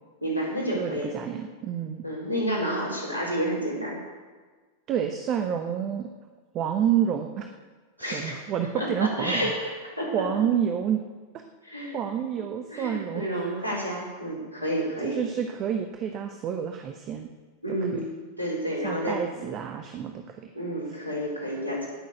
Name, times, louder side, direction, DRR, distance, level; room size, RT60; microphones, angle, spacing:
voice 1, 0.2-1.1 2.0-4.0 8.0-8.4 8.8-10.1 11.6-12.0 12.7-15.2 17.6-18.1 18.4-19.4 20.5-21.9, equal, 85° right, -3 dB, 4.3 m, -30 dB
voice 2, 0.7-2.0 4.9-6.1 6.5-7.5 8.0-9.5 10.1-11.0 11.9-13.5 15.0-17.3 17.9-18.0 18.8-20.4, right 8 dB, 35° right, 6 dB, 1.0 m, -29 dB
17.5 x 6.8 x 8.0 m, 1.4 s
figure-of-eight pair, 90°, 0 cm